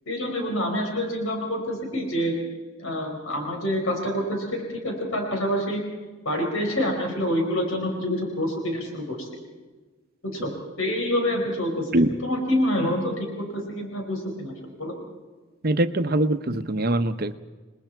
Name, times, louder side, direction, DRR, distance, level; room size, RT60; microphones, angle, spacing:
voice 1, 0.1-2.3 2.8-5.8 6.2-9.3 10.3-10.5 10.8-11.9 12.2-14.5 14.8-14.9, equal, 75° left, 2 dB, 4.7 m, -27 dB
voice 2, 15.6-17.4, right 1 dB, 45° right, 10 dB, 0.9 m, -23 dB
29.5 x 20.5 x 4.6 m, 1.3 s
head